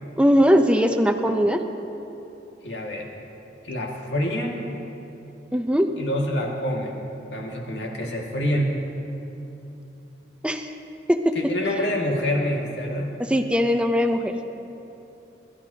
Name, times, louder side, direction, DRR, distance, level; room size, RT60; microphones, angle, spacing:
voice 1, 0.2-1.6 5.5-5.9 10.4-10.7 11.1-11.3 13.3-14.3, equal, 5° right, 5 dB, 0.6 m, -20 dB
voice 2, 2.6-3.1 3.6-4.6 6.0-7.0 7.3-8.7 11.3-13.1, equal, 80° left, -1 dB, 2.0 m, -26 dB
22.0 x 12.5 x 2.9 m, 3.0 s
head